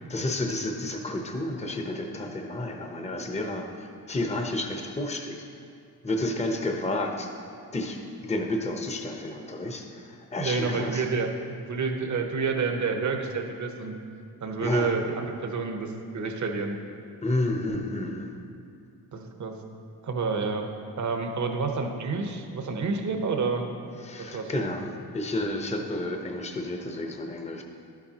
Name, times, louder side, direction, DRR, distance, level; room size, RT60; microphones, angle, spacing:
voice 1, 0.1-5.4 6.0-7.3 7.7-11.0 14.6-15.1 17.2-18.3 24.0-27.6, left 1 dB, 20° left, 3 dB, 0.8 m, -31 dB
voice 2, 10.4-13.9 14.4-16.8 19.1-19.6 20.0-20.6 21.0-23.7 24.2-24.7, right 4 dB, 50° right, 4 dB, 1.0 m, -29 dB
11.5 x 7.3 x 2.9 m, 2.4 s
cardioid pair, 60°, 37 cm